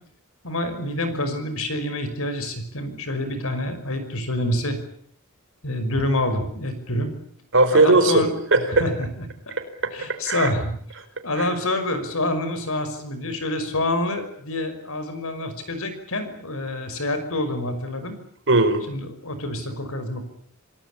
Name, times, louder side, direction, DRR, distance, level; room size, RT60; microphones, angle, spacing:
voice 1, 0.4-4.8 5.6-7.1 7.7-8.3 8.8-9.5 9.9-10.7 11.2-18.2 18.9-20.2, left 1 dB, 65° left, 10 dB, 5.7 m, -27 dB
voice 2, 7.5-8.9 9.6-10.5 18.5-18.8, right 2 dB, 60° right, 9 dB, 4.6 m, -19 dB
27.5 x 19.5 x 8.7 m, 0.64 s
head